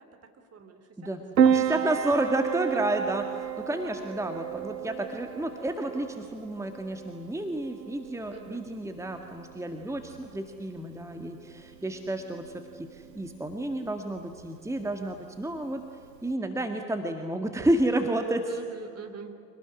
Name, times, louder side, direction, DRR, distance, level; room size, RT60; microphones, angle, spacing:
voice 1, 0.0-1.4 1.7-2.0 8.3-8.6 18.5-19.3, right 6 dB, 30° right, 7 dB, 3.1 m, -46 dB
Piano, 1.4-16.3, right 8 dB, 85° right, 0.9 m, -32 dB
voice 2, 1.5-15.8 16.2-18.6, right 1 dB, 5° right, 5 dB, 1.9 m, -31 dB
26.0 x 19.0 x 9.9 m, 2.7 s
figure-of-eight pair, 65°, 48 cm